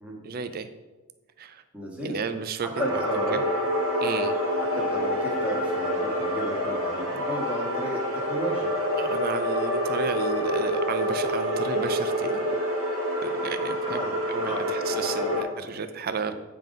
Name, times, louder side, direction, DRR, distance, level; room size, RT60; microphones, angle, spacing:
voice 1, 0.2-0.7 1.4-1.6 2.0-3.0 3.3-3.4 4.0-4.3 9.0-12.5 13.2-14.0 14.3-16.3, right 6 dB, 40° right, 10 dB, 0.4 m, -33 dB
voice 2, 1.7-2.2 2.6-3.4 4.6-8.7 13.9-15.8, right 1 dB, 5° right, -3 dB, 1.4 m, -34 dB
sound 1, 2.7-15.4, equal, 65° right, 1.7 m, -27 dB
9.1 x 3.8 x 5.3 m, 1.2 s
head